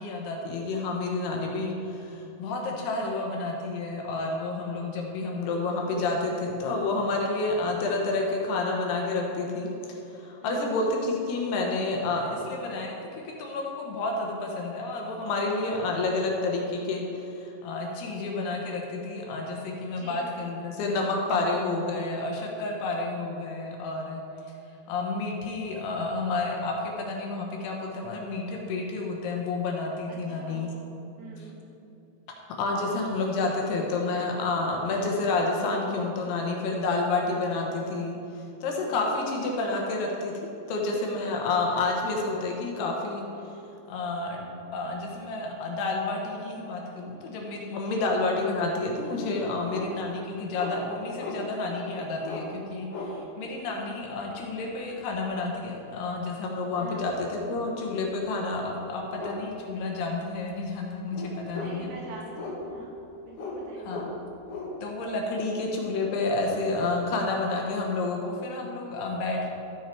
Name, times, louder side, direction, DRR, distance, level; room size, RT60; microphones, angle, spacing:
voice 1, 0.0-13.0 13.2-24.2 24.9-30.7 32.6-38.2 38.6-43.2 43.9-61.9 63.8-64.1 64.8-69.5, left 3 dB, 75° left, 0 dB, 3.0 m, -30 dB
voice 2, 10.4-10.8 19.9-20.2 30.1-30.8 31.2-31.6 33.2-33.3 33.6-34.1 38.9-39.4 47.8-48.1 56.7-57.2 61.6-62.9 63.2-64.0 65.4-65.6, right 3 dB, 75° right, -5 dB, 4.1 m, -45 dB
sound 1, 49.7-49.9 50.5-50.8 51.2-51.4 52.2-52.4 52.9-53.1 55.1-55.4 58.2-58.3 59.2-59.4 59.7-59.8 60.2-60.5 61.1-61.9 62.3-62.9 63.3-63.6 63.9-64.7, left 3 dB, 55° left, 2.4 m, -36 dB
13.0 x 6.4 x 4.5 m, 3.0 s
omnidirectional pair, 4.9 m